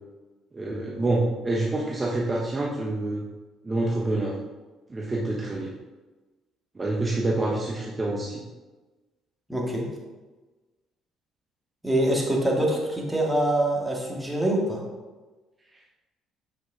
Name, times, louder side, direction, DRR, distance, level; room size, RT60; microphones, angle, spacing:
voice 1, 0.5-3.2 3.6-4.3 4.9-5.7 6.7-8.4, right 2 dB, 25° right, -2 dB, 1.1 m, -27 dB
voice 2, 9.5-9.9 11.8-14.8, right 1 dB, 5° right, -2 dB, 2.2 m, -24 dB
7.7 x 5.4 x 3.7 m, 1.2 s
hypercardioid pair, 60°, 0 cm